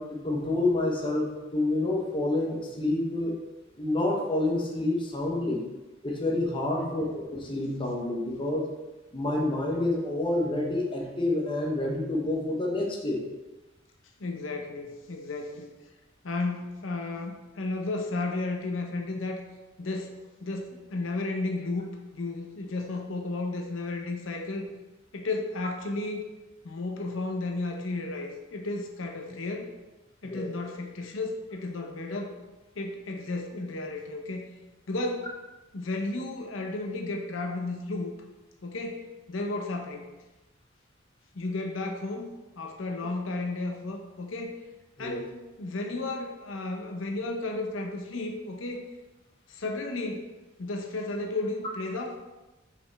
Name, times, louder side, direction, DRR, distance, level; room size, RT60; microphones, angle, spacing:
voice 1, 0.0-3.3 3.8-5.6 6.0-8.7 9.1-13.2 30.2-30.5 45.0-45.3, left 2 dB, 25° left, -1 dB, 0.9 m, -28 dB
voice 2, 14.2-15.7 16.2-19.4 19.8-21.9 22.1-24.7 25.1-26.2 26.6-29.7 30.2-32.3 32.8-34.5 34.9-35.3 35.7-38.1 38.6-40.1 41.3-42.3 42.6-44.6 45.0-48.8 49.5-50.3 50.6-52.2, left 2 dB, 85° left, 3 dB, 0.7 m, -33 dB
5.5 x 5.0 x 3.4 m, 1.1 s
head